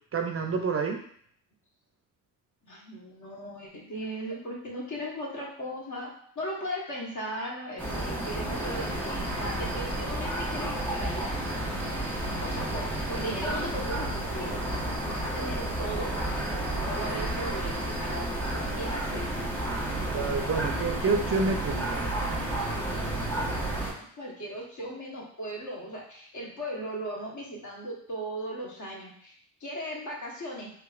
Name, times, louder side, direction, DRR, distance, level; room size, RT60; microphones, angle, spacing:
voice 1, 0.1-1.0 19.8-22.1, right 4 dB, 35° right, 3 dB, 0.4 m, -29 dB
voice 2, 2.6-11.5 12.4-16.4 16.7-19.3 23.6-29.3 29.6-30.7, equal, 45° left, -2 dB, 1.2 m, -37 dB
sound 1, 7.8-23.9, right 1 dB, 5° left, 1.2 m, -31 dB
3.4 x 2.8 x 2.4 m, 0.62 s
supercardioid pair, 55°, 41 cm